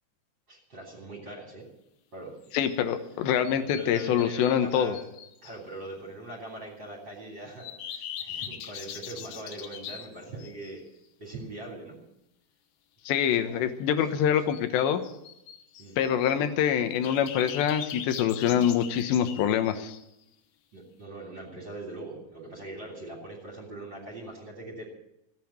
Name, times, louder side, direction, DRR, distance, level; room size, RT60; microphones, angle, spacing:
voice 1, 0.5-1.7 2.1-2.3 3.3-5.0 5.4-10.8 11.2-12.0 13.4-13.6 14.4-14.5 15.8-16.0 20.7-24.8, right 2 dB, 30° right, -1 dB, 3.6 m, -41 dB
sound 1, 2.4-3.0 3.4-5.6 7.6-10.8 14.5-16.4 16.9-20.2, left 9 dB, 70° left, 3.0 m, -41 dB
voice 2, 2.5-5.0 13.1-15.0 16.0-20.0, left 9 dB, 90° left, 8 dB, 3.3 m, -25 dB
16.5 x 9.2 x 8.7 m, 0.84 s
omnidirectional pair, 4.9 m